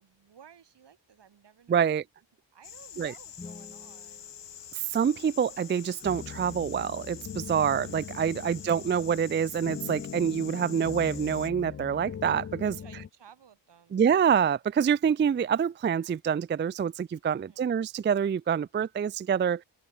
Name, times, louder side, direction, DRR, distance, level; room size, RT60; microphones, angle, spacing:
voice 1, 0.0-1.8 2.5-4.3 8.2-8.7 12.6-14.2 17.3-17.7, right 8 dB, 80° right, 6.7 m, -56 dB
voice 2, 1.7-2.0 3.0-3.1 4.7-12.8 13.9-19.6, right 7 dB, 30° right, 0.4 m, -26 dB
sound 1, 2.6-11.5, left 9 dB, 90° left, 3.6 m, -46 dB
sound 2, 3.3-5.5, left 3 dB, 15° left, 0.9 m, -50 dB
sound 3, 6.0-13.1, left 7 dB, 35° left, 0.5 m, -41 dB
wide cardioid pair, 140°, 41 cm